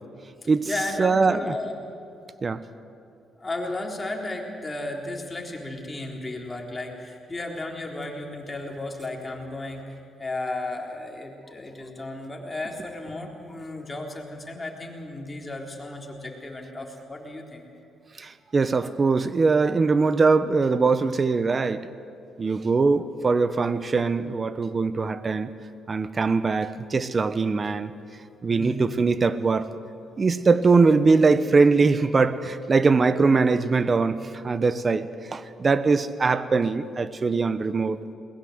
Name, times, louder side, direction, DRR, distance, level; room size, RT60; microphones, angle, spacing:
voice 1, 0.4-1.7 3.4-17.6 28.5-28.8, left 2 dB, 20° left, 3.9 m, -34 dB
voice 2, 1.0-1.5 2.4-2.6 18.2-21.9 22.4-25.5 25.9-27.9 28.4-29.7 30.2-34.2 34.4-38.0, right 4 dB, 35° right, 1.0 m, -22 dB
21.5 x 20.0 x 8.0 m
cardioid pair, 90°, 0 cm